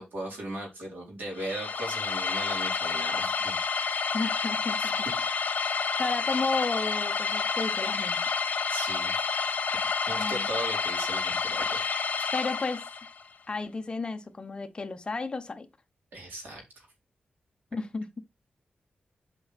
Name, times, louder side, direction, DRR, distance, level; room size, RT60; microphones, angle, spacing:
voice 1, 0.0-4.1 4.8-4.9 8.7-9.1 10.1-11.8 16.1-16.6, right 1 dB, 85° right, 4.2 m, -38 dB
sound 1, 1.3-13.2, left 5 dB, 60° left, 1.3 m, -29 dB
voice 2, 4.1-5.4 6.0-8.3 10.1-10.6 12.3-12.9 13.5-15.7 17.7-18.1, left 3 dB, 30° left, 0.9 m, -33 dB
8.4 x 5.3 x 4.2 m
wide cardioid pair, 160°, 3 cm